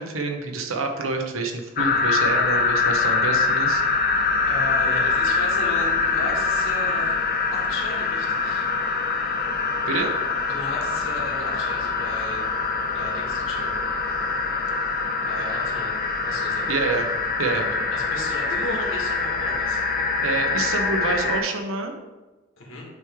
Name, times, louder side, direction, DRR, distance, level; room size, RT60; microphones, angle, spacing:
voice 1, 0.0-3.8 9.9-10.1 16.7-17.1 17.4-17.6 20.2-21.9, right 3 dB, 80° right, 4 dB, 0.8 m, -27 dB
sound 1, 1.8-21.4, left 4 dB, 45° left, 0.5 m, -24 dB
voice 2, 4.5-7.2 7.5-8.6 10.5-12.5 12.9-13.7 15.3-15.9 16.2-16.7 17.4-17.6 17.9-20.1 22.6-22.8, left 1 dB, 70° left, -2 dB, 1.6 m, -35 dB
8.7 x 3.2 x 3.6 m, 1.2 s
head